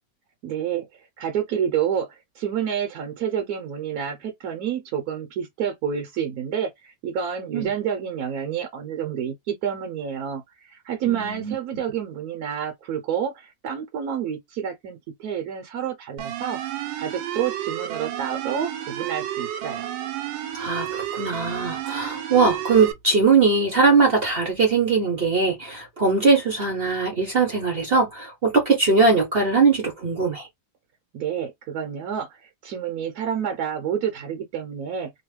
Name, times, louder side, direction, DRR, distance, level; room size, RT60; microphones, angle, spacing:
voice 1, 0.4-19.9 31.1-35.1, right 8 dB, 65° right, 1.0 m, -29 dB
voice 2, 11.0-11.5 20.5-30.5, right 4 dB, 50° right, 0.7 m, -20 dB
sound 1, 16.2-22.9, right 12 dB, 80° right, 1.3 m, -31 dB
3.0 x 2.1 x 3.1 m
omnidirectional pair, 2.0 m